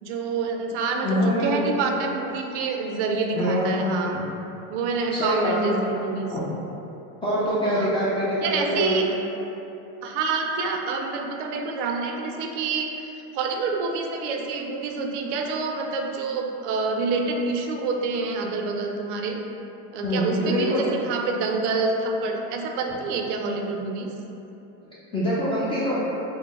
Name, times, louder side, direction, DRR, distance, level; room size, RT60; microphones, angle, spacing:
voice 1, 0.0-4.2 4.7-6.3 7.6-8.0 8.4-9.0 10.0-19.4 19.9-24.1, right 4 dB, 85° right, 2 dB, 0.5 m, -27 dB
voice 2, 1.0-1.7 3.3-4.0 5.1-6.0 6.3-6.4 7.2-9.1 20.0-21.0 24.8-26.0, equal, 15° left, -9 dB, 0.3 m, -25 dB
3.9 x 2.0 x 3.5 m, 2.9 s
supercardioid pair, 150°, 35 cm